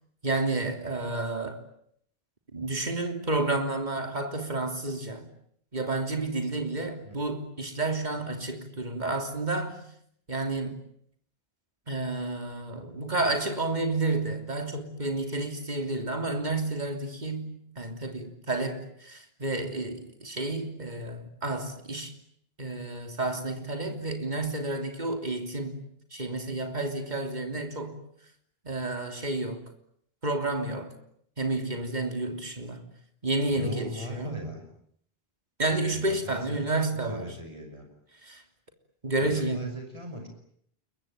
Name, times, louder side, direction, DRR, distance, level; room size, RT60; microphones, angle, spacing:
voice 1, 0.2-1.6 2.5-5.3 5.7-9.8 10.3-10.8 11.9-22.1 22.6-25.8 26.1-28.0 28.6-29.6 30.2-30.9 31.4-32.8 33.2-34.4 35.6-37.3 38.2-38.4 39.0-39.7, right 2 dB, 45° right, 3.3 m, -30 dB
voice 2, 33.5-34.6 35.9-37.9 39.2-40.3, equal, 30° right, 5.9 m, -40 dB
28.5 x 23.5 x 9.0 m
omnidirectional pair, 1.0 m